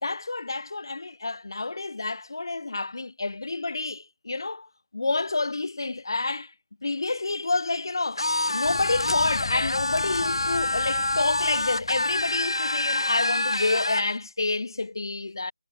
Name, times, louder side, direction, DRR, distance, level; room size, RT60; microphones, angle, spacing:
voice 1, 0.0-4.7 4.9-6.5 6.8-8.2 8.5-15.5, left 3 dB, 60° left, 1.0 m, -28 dB
sound 1, 8.2-14.1, left 2 dB, 80° left, 2.0 m, -27 dB
sound 2, 8.6-12.6, left 6 dB, 35° left, 1.2 m, -39 dB
figure-of-eight pair, 165°, 2 cm